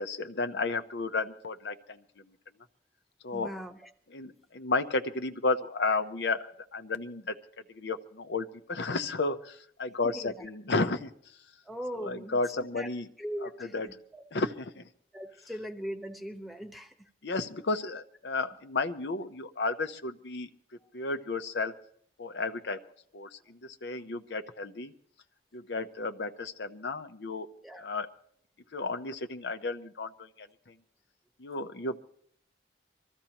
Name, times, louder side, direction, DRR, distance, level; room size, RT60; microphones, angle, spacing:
voice 1, 0.0-2.0 3.2-3.5 4.1-6.5 6.7-7.4 7.7-11.1 12.0-13.1 13.4-13.9 14.3-14.8 17.2-20.5 20.9-21.7 22.2-22.8 23.1-24.9 25.5-27.5 27.8-28.1 28.7-30.5 31.4-32.0, left 3 dB, 75° left, 8 dB, 0.7 m, -32 dB
voice 2, 3.3-3.9 10.0-10.4 11.6-12.9 13.2-14.2 15.1-17.1 20.8-20.9 27.6-27.9, equal, ahead, 5 dB, 1.0 m, -40 dB
24.0 x 14.5 x 2.9 m, 0.62 s
head